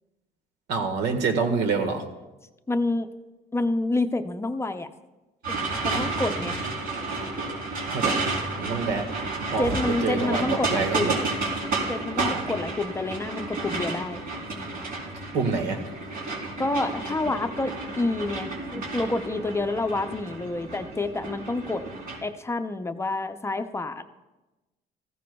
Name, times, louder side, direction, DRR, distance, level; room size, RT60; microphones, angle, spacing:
voice 1, 0.7-2.0 5.9-6.1 7.9-9.1 9.5-9.8 10.0-11.2 12.2-12.5 15.3-15.8, right 4 dB, 85° right, 5 dB, 1.5 m, -27 dB
voice 2, 2.7-3.1 3.5-4.9 5.5-5.6 5.8-6.7 9.6-11.2 11.9-14.2 16.6-21.8 22.2-24.0, left 2 dB, 15° left, 8 dB, 0.6 m, -28 dB
sound 1, 5.4-22.2, right 3 dB, 65° right, 3.6 m, -31 dB
15.5 x 14.5 x 2.3 m, 1.1 s
cardioid pair, 110°, 17 cm